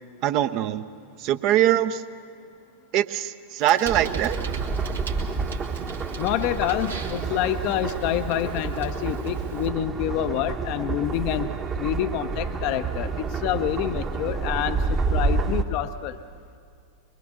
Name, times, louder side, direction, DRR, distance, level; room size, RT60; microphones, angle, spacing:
voice 1, 0.2-0.9 1.2-2.0 2.9-4.4, right 12 dB, 40° right, 12 dB, 0.7 m, -22 dB
Bicycle, 3.6-9.7, right 5 dB, 75° right, 2.1 m, -41 dB
sound 1, 3.8-15.6, right 4 dB, 25° right, 1.1 m, -29 dB
voice 2, 6.2-16.2, left 11 dB, 45° left, 9 dB, 0.6 m, -27 dB
24.0 x 22.5 x 6.5 m, 2.4 s
figure-of-eight pair, 90°, 0 cm